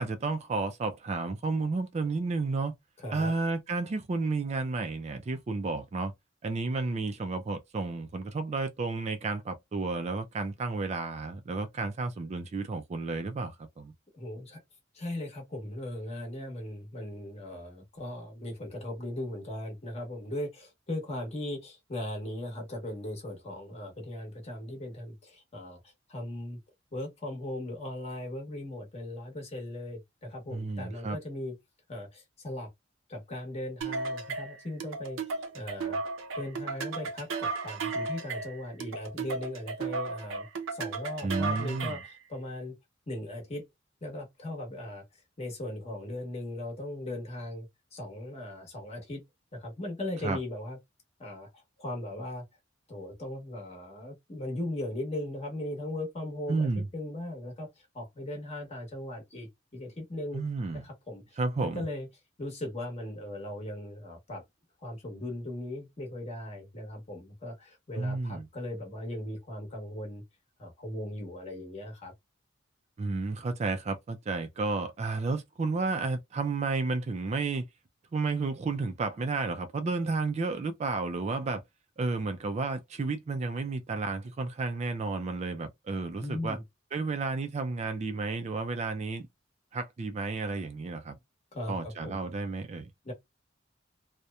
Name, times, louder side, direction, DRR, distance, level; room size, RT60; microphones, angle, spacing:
voice 1, 0.0-2.7 3.1-6.1 6.4-13.9 30.5-31.2 41.2-42.0 50.2-50.4 56.5-56.9 60.3-60.9 61.4-61.8 68.0-68.5 73.0-77.7 78.1-81.6 82.0-86.6 86.9-89.3 89.7-91.2 91.7-92.9, right 3 dB, 35° right, 0.3 m, -32 dB
voice 2, 14.1-14.6 14.9-26.6 26.9-31.5 31.9-32.7 33.1-35.2 35.5-36.0 36.3-42.7 43.1-43.6 44.0-45.0 45.4-49.2 49.5-50.8 51.2-52.4 52.9-60.4 60.8-62.1 62.4-64.4 64.8-70.2 70.6-72.1 86.2-86.6 91.5-92.2 93.0-93.1, left 1 dB, 35° left, 1.0 m, -38 dB
sound 1, 33.8-42.2, right 4 dB, 80° right, 0.6 m, -35 dB
2.8 x 2.1 x 2.2 m
head